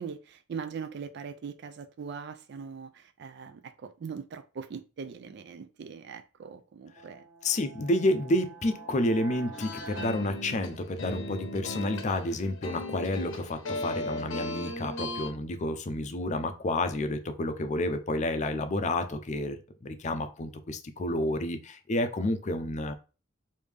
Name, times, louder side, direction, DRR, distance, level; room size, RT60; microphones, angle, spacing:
voice 1, 0.0-7.3, right 6 dB, 55° right, 0.3 m, -41 dB
sound 1, 6.9-11.3, right 4 dB, 10° right, 0.9 m, -47 dB
voice 2, 7.4-22.9, left 1 dB, 35° left, 0.5 m, -30 dB
sound 2, 9.5-15.3, left 2 dB, 75° left, 0.7 m, -37 dB
3.4 x 2.6 x 3.3 m
head